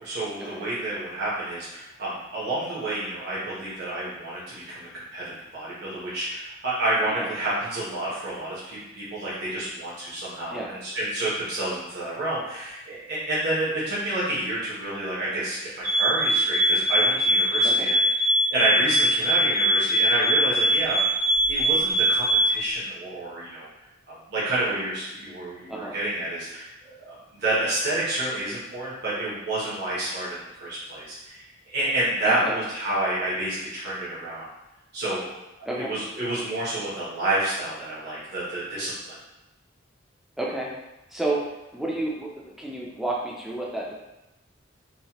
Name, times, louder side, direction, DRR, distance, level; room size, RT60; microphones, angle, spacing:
voice 1, 0.0-18.0 18.5-21.0 21.5-23.7 24.3-34.4 34.9-35.3 35.7-38.9, right 1 dB, 55° right, -8 dB, 0.8 m, -29 dB
sound 1, 15.8-22.6, right 1 dB, 75° right, 1.3 m, -22 dB
voice 2, 32.2-32.6 35.6-35.9 40.4-40.7 41.1-41.4 41.7-43.9, right 2 dB, ahead, -3 dB, 0.3 m, -30 dB
2.9 x 2.1 x 2.8 m, 0.95 s
head